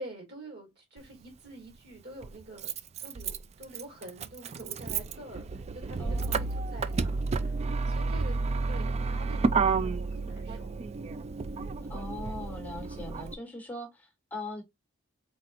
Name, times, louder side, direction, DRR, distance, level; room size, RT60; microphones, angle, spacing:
voice 1, 0.0-2.7 3.0-8.4 8.7-10.8 13.0-13.2, right 1 dB, 50° right, 2.4 m, -46 dB
Motor vehicle (road), 1.0-1.1 2.2-13.3, right 4 dB, 30° right, 0.3 m, -31 dB
voice 2, 6.0-6.4 11.9-14.6, left 2 dB, 10° left, 1.4 m, -40 dB
4.1 x 4.0 x 2.5 m
head